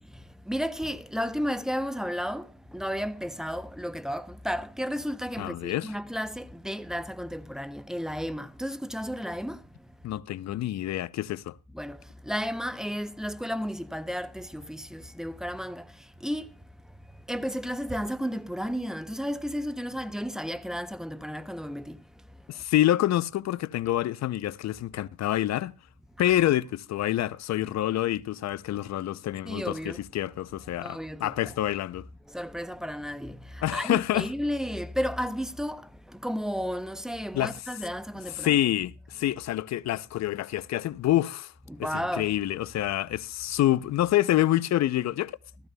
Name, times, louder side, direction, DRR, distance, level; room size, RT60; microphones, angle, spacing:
voice 1, 0.1-9.9 11.7-16.6 17.3-22.0 26.2-26.3 29.4-30.0 30.8-31.6 32.3-38.6 41.7-42.3, equal, ahead, 0.6 m, -33 dB
voice 2, 5.4-5.9 10.0-11.6 22.5-25.7 26.2-32.0 33.6-34.3 37.3-37.6 38.4-41.5 42.2-45.3, left 13 dB, 65° left, 0.5 m, -27 dB
15.0 x 14.0 x 2.2 m
cardioid pair, 90°, 30 cm